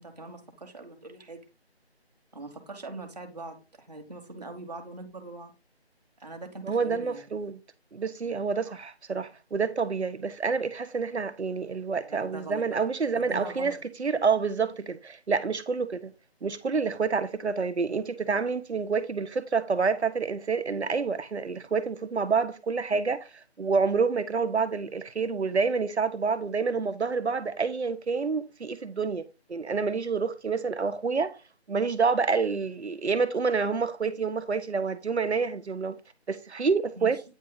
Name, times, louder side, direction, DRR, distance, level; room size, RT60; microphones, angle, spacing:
voice 1, 0.0-1.4 2.3-5.5 6.2-7.2 12.1-12.8 13.1-13.8 37.0-37.1, right 3 dB, 40° right, 1.1 m, -42 dB
voice 2, 6.6-7.6 7.9-16.1 16.4-31.3 31.7-35.9 36.3-37.2, right 5 dB, 85° right, 1.0 m, -28 dB
9.1 x 3.0 x 3.8 m
figure-of-eight pair, 175°, 33 cm